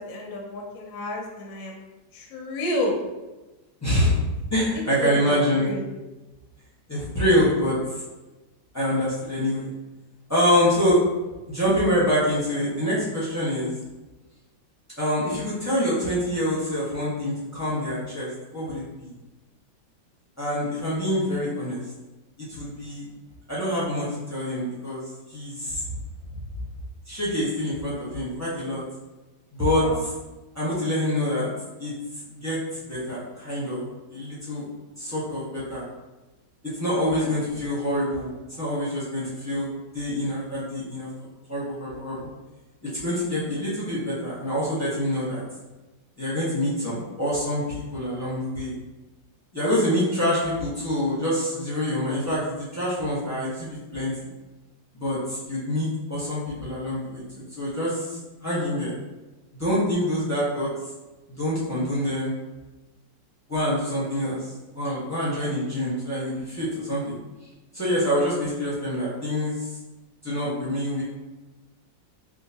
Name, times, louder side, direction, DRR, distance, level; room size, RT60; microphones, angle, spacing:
voice 1, 0.0-1.8 2.1-3.0 4.7-5.8 29.8-30.0 37.1-37.6, left 1 dB, 65° left, -1 dB, 0.9 m, -31 dB
voice 2, 3.8-4.2 4.5-5.7 6.9-7.8 8.7-9.7 10.3-11.0 11.5-13.7 15.0-19.1 20.4-21.8 22.4-23.1 23.5-25.0 25.3-25.8 27.1-28.8 29.5-29.9 30.5-31.5 31.8-31.9 32.3-33.8 34.1-34.7 35.0-35.8 36.7-38.3 38.6-39.7 39.9-41.1 41.5-42.3 42.8-45.4 46.2-48.7 49.5-54.1 54.9-59.0 59.6-60.7 61.4-62.3 63.5-67.2 67.7-69.7 70.2-71.0, equal, 15° left, -10 dB, 0.7 m, -26 dB
3.7 x 2.5 x 2.8 m, 1.1 s
omnidirectional pair, 2.0 m